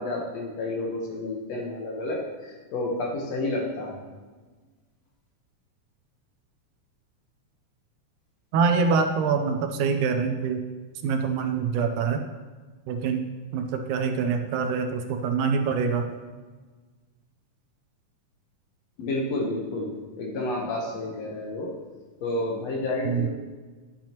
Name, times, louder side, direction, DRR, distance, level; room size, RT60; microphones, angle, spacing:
voice 1, 0.0-4.1 19.0-21.8 22.2-23.3, left 2 dB, 60° left, -1 dB, 2.0 m, -30 dB
voice 2, 8.5-10.6 11.0-12.2 12.9-13.2 13.5-16.0 23.1-23.3, right 5 dB, 80° right, 6 dB, 2.1 m, -25 dB
12.0 x 7.4 x 2.9 m, 1.4 s
omnidirectional pair, 3.7 m